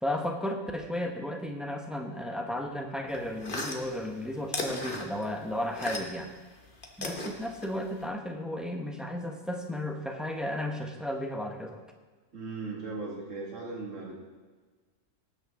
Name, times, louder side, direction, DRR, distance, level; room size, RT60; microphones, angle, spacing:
voice 1, 0.0-6.3 7.0-11.8, left 1 dB, ahead, 2 dB, 1.2 m, -34 dB
sound 1, 3.1-6.3 6.6-8.1, left 2 dB, 45° left, 1.4 m, -37 dB
voice 2, 12.3-14.2, right 3 dB, 85° right, -3 dB, 2.6 m, -38 dB
18.5 x 8.6 x 3.8 m, 1.4 s
omnidirectional pair, 1.3 m